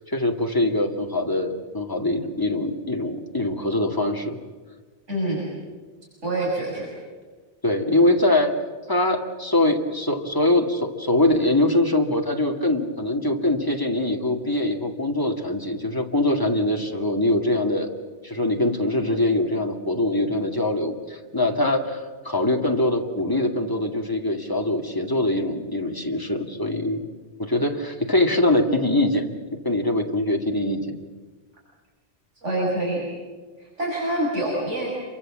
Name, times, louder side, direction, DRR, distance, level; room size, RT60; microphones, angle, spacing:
voice 1, 0.0-4.4 7.6-8.5 8.9-17.9 18.2-27.1 27.4-29.3 29.6-31.0, left 1 dB, 15° left, 2 dB, 2.3 m, -23 dB
voice 2, 5.1-5.4 6.2-6.9 32.4-33.1 33.6-34.9, right 1 dB, 80° right, -4 dB, 7.1 m, -26 dB
28.0 x 24.0 x 7.6 m, 1.4 s
omnidirectional pair, 1.2 m